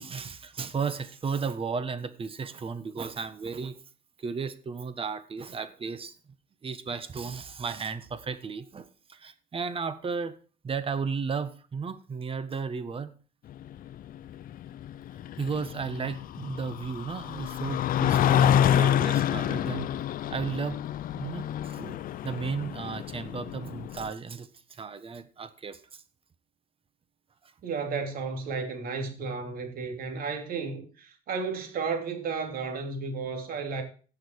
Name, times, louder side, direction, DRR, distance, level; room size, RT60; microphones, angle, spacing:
voice 1, 0.0-3.8 4.2-6.2 6.6-10.4 10.6-13.1 15.4-19.9 20.3-20.8 21.1-26.0, right 5 dB, 35° right, 1.4 m, -34 dB
sound 1, 13.5-24.1, left 11 dB, 55° left, 0.6 m, -28 dB
voice 2, 27.6-33.8, right 4 dB, 60° right, 3.4 m, -33 dB
17.0 x 6.6 x 4.8 m
cardioid pair, 110°, 17 cm